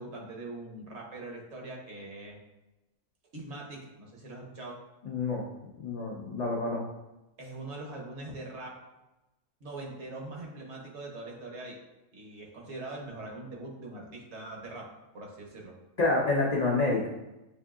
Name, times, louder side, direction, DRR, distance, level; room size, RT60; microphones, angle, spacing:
voice 1, 0.0-2.4 3.3-4.8 7.4-8.8 9.6-11.8 12.1-14.9 15.1-15.7, right 2 dB, 55° right, -1 dB, 1.0 m, -42 dB
voice 2, 5.0-5.4 5.8-6.8 16.0-17.1, left 3 dB, 75° left, -3 dB, 0.3 m, -28 dB
6.7 x 2.7 x 2.3 m, 0.99 s
omnidirectional pair, 1.5 m